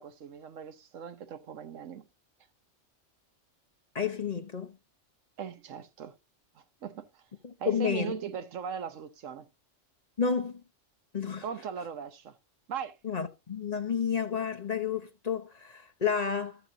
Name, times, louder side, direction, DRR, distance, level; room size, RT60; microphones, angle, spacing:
voice 1, 0.0-2.0 5.4-6.1 6.8-7.1 7.6-9.5 11.4-12.3 12.7-12.9, right 7 dB, 90° right, 1.3 m, -39 dB
voice 2, 3.9-4.8 7.4-8.1 10.2-10.6 11.1-11.4 13.0-16.6, left 6 dB, 35° left, 0.9 m, -31 dB
14.0 x 7.1 x 2.8 m
omnidirectional pair, 1.3 m